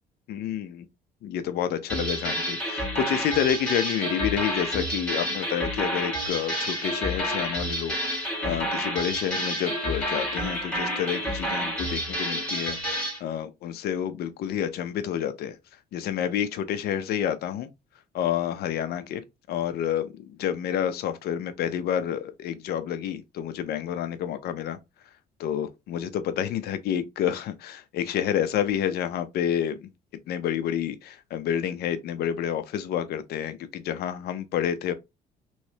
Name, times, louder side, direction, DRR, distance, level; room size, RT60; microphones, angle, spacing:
voice 1, 0.3-0.9 1.2-15.6 15.9-17.7 18.1-19.2 19.5-24.8 25.4-29.9 30.3-34.9, left 9 dB, 70° left, 0.6 m, -29 dB
sound 1, 1.9-13.2, equal, 5° left, 1.7 m, -29 dB
3.1 x 3.1 x 2.8 m
cardioid pair, 110°, 17 cm